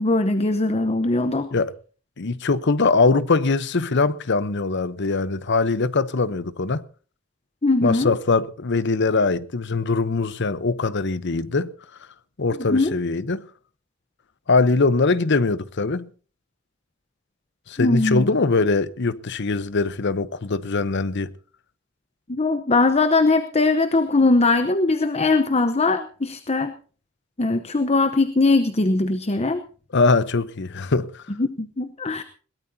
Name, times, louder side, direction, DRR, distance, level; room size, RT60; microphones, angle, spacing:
voice 1, 0.0-1.5 7.6-8.1 12.7-13.0 17.8-18.3 22.3-26.7 27.4-29.6 31.4-32.2, left 3 dB, 30° left, 0.9 m, -20 dB
voice 2, 2.2-6.8 7.8-11.7 12.4-13.4 14.5-16.1 17.7-21.3 29.9-31.2, left 3 dB, 60° left, 0.9 m, -22 dB
21.5 x 18.0 x 2.8 m
head